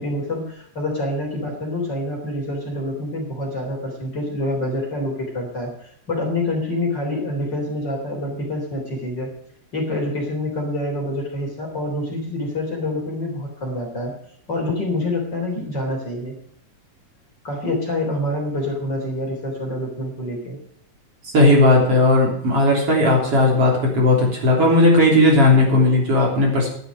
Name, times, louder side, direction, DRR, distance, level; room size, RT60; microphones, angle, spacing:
voice 1, 0.0-9.3 9.7-14.1 14.5-16.4 17.4-20.6, left 1 dB, 30° left, 0 dB, 4.0 m, -26 dB
voice 2, 21.3-26.7, left 2 dB, 45° right, -1 dB, 4.3 m, -16 dB
12.0 x 11.5 x 5.0 m, 0.65 s
omnidirectional pair, 3.9 m